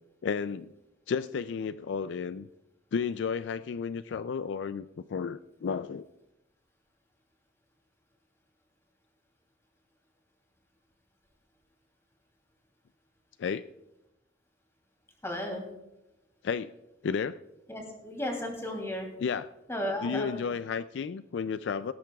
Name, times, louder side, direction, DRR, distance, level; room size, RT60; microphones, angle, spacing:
voice 1, 0.2-0.7 1.1-2.5 2.9-6.0 13.4-13.7 16.4-16.7 17.0-17.4 19.2-19.5 20.0-21.9, left 6 dB, 65° left, 13 dB, 0.3 m, -32 dB
voice 2, 15.2-15.6 17.7-19.1 19.7-20.4, left 1 dB, 15° left, 1 dB, 2.8 m, -34 dB
17.5 x 13.5 x 2.3 m, 0.93 s
head